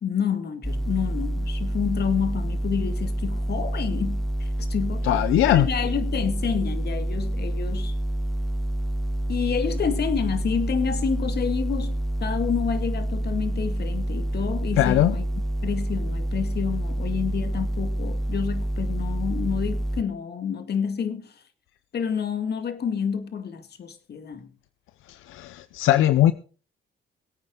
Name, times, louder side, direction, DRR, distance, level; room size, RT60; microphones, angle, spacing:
voice 1, 0.0-5.1 5.5-7.9 9.3-15.3 15.6-21.3 21.9-24.5, left 7 dB, 55° left, 2.1 m, -29 dB
sound 1, 0.6-20.0, right 1 dB, ahead, 0.7 m, -27 dB
voice 2, 5.0-5.7 14.8-15.1 25.3-26.3, left 13 dB, 85° left, 0.7 m, -20 dB
23.0 x 8.9 x 3.8 m
cardioid pair, 90°, 20 cm